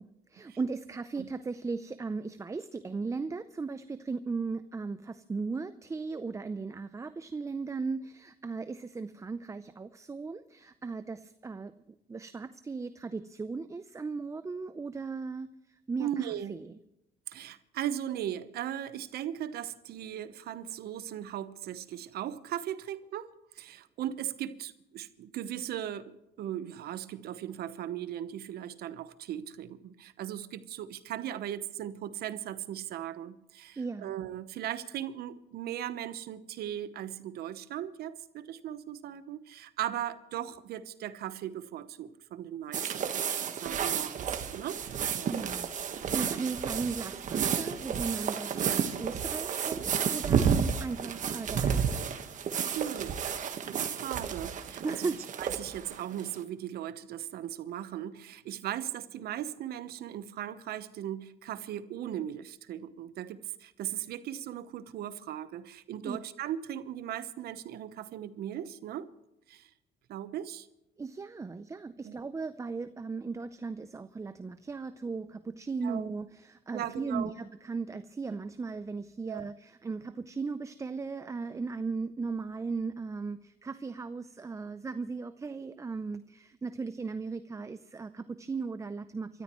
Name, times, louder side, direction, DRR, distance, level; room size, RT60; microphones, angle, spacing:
voice 1, 0.0-11.7 12.1-15.5 15.9-16.8 33.8-34.1 45.2-45.7 46.0-52.0 54.8-55.2 66.0-66.2 71.0-89.4, right 4 dB, 20° right, 12 dB, 0.5 m, -37 dB
voice 2, 16.0-16.6 17.3-23.3 23.5-44.8 45.2-45.3 46.2-46.5 52.7-53.2 53.7-55.1 55.4-69.1 69.5-69.7 70.1-70.7 72.0-72.2 75.8-76.0 76.7-77.3 79.3-79.5, right 11 dB, 70° right, 13 dB, 1.0 m, -38 dB
sound 1, 42.7-56.4, right 7 dB, 50° right, 1.4 m, -31 dB
27.5 x 13.5 x 3.1 m, 0.89 s
cardioid pair, 110°, 17 cm